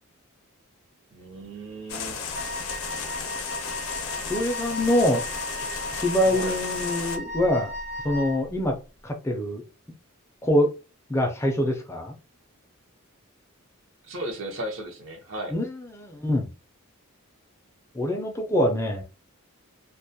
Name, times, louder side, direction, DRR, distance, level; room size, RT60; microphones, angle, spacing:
voice 1, 1.1-2.2 6.2-6.6 14.0-15.6, right 1 dB, 60° right, 0.6 m, -35 dB
sound 1, 1.9-7.2, left 6 dB, 70° left, 0.5 m, -34 dB
Wind instrument woodwind instrument, 2.3-8.4, equal, 80° right, 1.0 m, -35 dB
voice 2, 4.3-5.2 5.9-7.7 8.0-8.8 9.0-9.6 10.4-10.7 11.1-12.1 15.5-16.5 17.9-19.0, left 1 dB, 10° left, 0.3 m, -24 dB
2.2 x 2.1 x 2.7 m
head